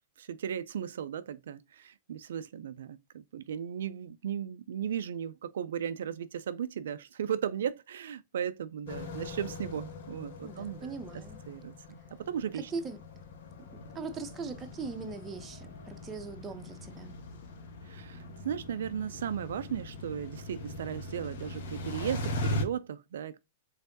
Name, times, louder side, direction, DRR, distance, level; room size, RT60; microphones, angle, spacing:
voice 1, 0.2-12.7 17.8-23.4, right 9 dB, 75° right, 0.3 m, -36 dB
sound 1, 8.9-22.6, left 2 dB, 65° left, 1.1 m, -40 dB
voice 2, 10.4-11.4 12.5-13.0 13.9-17.2, right 4 dB, 20° right, 0.8 m, -40 dB
3.9 x 3.3 x 2.6 m
hypercardioid pair, 115°, 0 cm